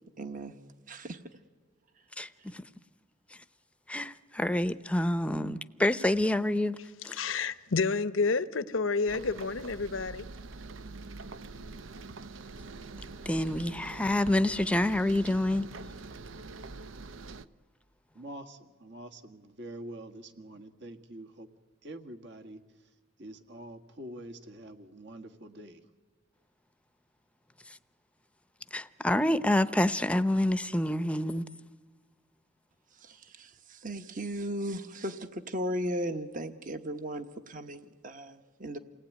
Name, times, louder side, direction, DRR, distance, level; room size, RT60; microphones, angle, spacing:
voice 1, 0.2-0.5 0.9-1.2 33.0-38.8, equal, 45° right, 1.2 m, -36 dB
voice 2, 2.2-2.7 3.3-3.4 3.9-6.8 7.0-7.2 13.2-15.7 27.6-27.8 28.7-31.5, left 1 dB, 5° left, 0.7 m, -28 dB
voice 3, 7.2-10.3, left 4 dB, 85° left, 0.9 m, -29 dB
sound 1, 9.1-17.4, right 3 dB, 90° right, 0.7 m, -44 dB
voice 4, 18.1-21.5 21.8-22.9 23.2-25.9, right 1 dB, 60° right, 1.7 m, -46 dB
28.5 x 19.0 x 9.3 m
head